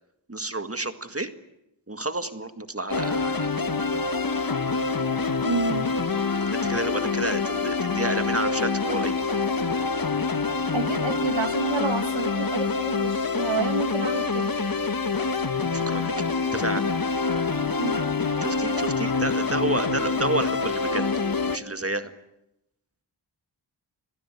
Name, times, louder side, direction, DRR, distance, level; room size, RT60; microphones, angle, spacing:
voice 1, 0.3-1.3 1.9-3.5 6.5-9.1 15.7-16.1 16.5-16.9 18.4-21.0 21.5-22.1, right 2 dB, 30° right, 1.9 m, -30 dB
sound 1, 2.9-21.6, left 4 dB, 45° left, 1.5 m, -26 dB
voice 2, 5.4-5.9 10.7-14.6 17.8-18.1, right 3 dB, 70° right, 2.5 m, -29 dB
30.0 x 21.5 x 8.3 m
wide cardioid pair, 70°, 47 cm